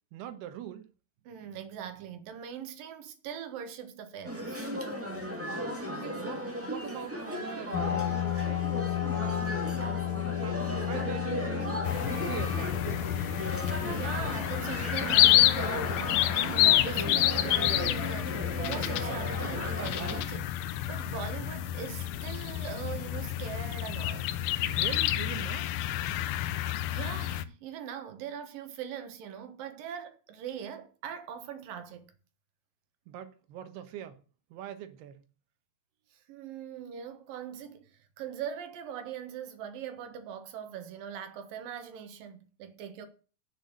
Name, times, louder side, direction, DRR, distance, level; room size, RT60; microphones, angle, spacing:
voice 1, 0.1-0.9 5.9-8.7 9.1-11.7 12.2-13.2 24.7-25.7 33.1-34.2 34.5-35.2, right 10 dB, 85° right, 3.1 m, -43 dB
voice 2, 1.3-4.7 13.9-24.4 26.4-26.5 26.9-32.1 36.1-37.9 38.2-43.1, right 8 dB, 65° right, 3.0 m, -41 dB
sound 1, 4.2-20.2, equal, 5° right, 1.3 m, -36 dB
sound 2, 7.7-25.0, left 11 dB, 60° left, 2.5 m, -36 dB
sound 3, 11.8-27.4, left 13 dB, 80° left, 2.4 m, -29 dB
8.6 x 6.5 x 8.0 m
omnidirectional pair, 4.5 m